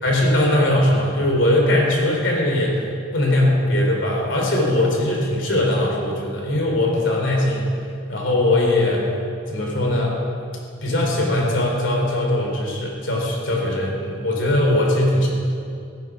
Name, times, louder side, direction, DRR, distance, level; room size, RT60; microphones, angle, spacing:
voice 1, 0.0-2.8 3.1-7.7 8.1-9.1 9.5-10.2 10.8-15.3, left 1 dB, 65° left, -1 dB, 3.4 m, -20 dB
14.5 x 9.7 x 6.0 m, 2.4 s
head